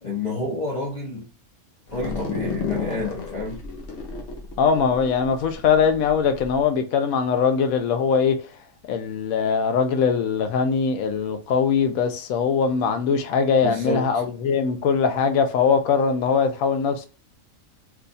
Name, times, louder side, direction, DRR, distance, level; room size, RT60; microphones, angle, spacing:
voice 1, 0.0-1.3 1.9-3.7 13.6-14.2, left 2 dB, 40° left, 0.6 m, -29 dB
sound 1, 1.9-6.6, left 4 dB, 60° left, 1.0 m, -32 dB
voice 2, 4.6-8.4 8.9-17.1, left 6 dB, 80° left, 1.0 m, -21 dB
2.7 x 2.3 x 3.9 m
omnidirectional pair, 1.5 m